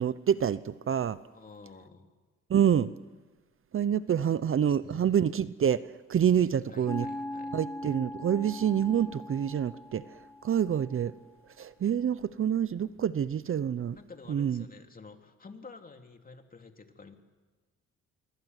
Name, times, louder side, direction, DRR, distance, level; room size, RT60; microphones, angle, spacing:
voice 1, 0.0-1.2 2.5-2.9 3.7-5.8 6.1-7.1 7.5-10.0 10.4-11.1 11.6-14.0 14.3-14.6, right 9 dB, 45° right, 16 dB, 0.8 m, -27 dB
voice 2, 1.3-2.1 4.3-5.1 6.4-7.6 13.9-17.1, left 4 dB, 30° left, 5 dB, 2.9 m, -50 dB
sound 1, 6.9-11.1, left 2 dB, 10° left, 1.3 m, -41 dB
27.0 x 23.5 x 8.2 m, 1.3 s
cardioid pair, 90°, 30 cm